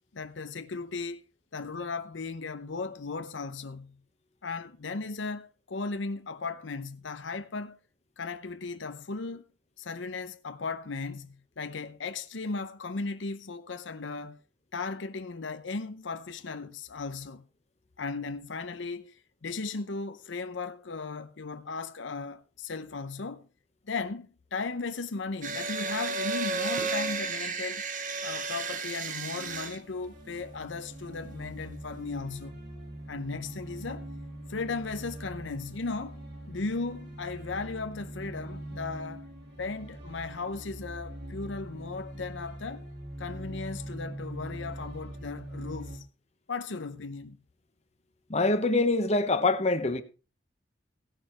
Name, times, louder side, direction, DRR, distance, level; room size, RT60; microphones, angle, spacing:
voice 1, 0.1-1.2 1.5-4.0 4.4-7.8 8.2-9.4 9.8-14.4 14.7-17.4 18.0-23.5 23.9-27.9 28.2-32.6 33.1-34.1 34.5-39.3 39.6-42.8 43.2-46.1 46.5-47.4, left 4 dB, 85° left, 0.8 m, -36 dB
sound 1, 25.4-29.8, right 4 dB, 45° right, 1.1 m, -33 dB
sound 2, 29.5-46.0, right 1 dB, 65° right, 3.7 m, -42 dB
voice 2, 48.3-50.0, left 2 dB, 35° left, 1.1 m, -25 dB
17.0 x 6.5 x 4.4 m
head